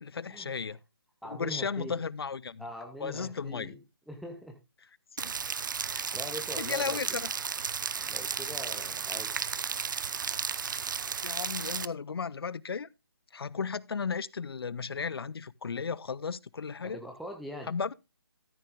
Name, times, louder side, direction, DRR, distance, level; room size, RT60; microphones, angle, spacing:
voice 1, 0.0-0.8 1.2-2.6 3.0-3.8 5.2-5.3 5.9-6.1 6.6-7.3 11.2-12.9 13.3-17.0 17.7-17.9, left 5 dB, 70° left, 0.5 m, -35 dB
voice 2, 1.2-2.0 2.6-3.8 4.1-4.6 6.1-7.0 8.0-9.3 16.8-17.7, equal, ahead, 0.5 m, -42 dB
Rain, 5.2-11.9, right 6 dB, 50° right, 0.5 m, -34 dB
13.5 x 6.4 x 3.6 m
figure-of-eight pair, 155°, 13 cm